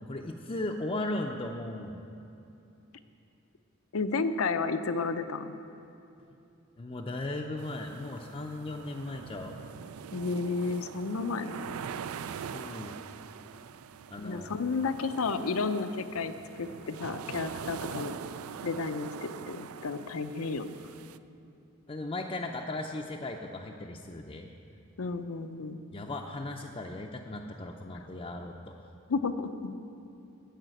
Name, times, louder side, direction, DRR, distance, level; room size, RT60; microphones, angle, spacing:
voice 1, 0.1-2.0 6.8-9.6 12.5-13.0 14.1-14.5 21.9-24.5 25.9-28.9, left 2 dB, 25° left, 0 dB, 0.5 m, -37 dB
voice 2, 3.9-5.6 10.1-11.8 14.2-16.3 16.6-18.1 18.6-20.7 25.0-25.8 29.1-29.8, left 4 dB, 80° left, 10 dB, 0.6 m, -32 dB
sound 1, 7.6-21.2, right 7 dB, 85° right, 0.4 m, -43 dB
14.0 x 5.0 x 9.0 m, 2.8 s
head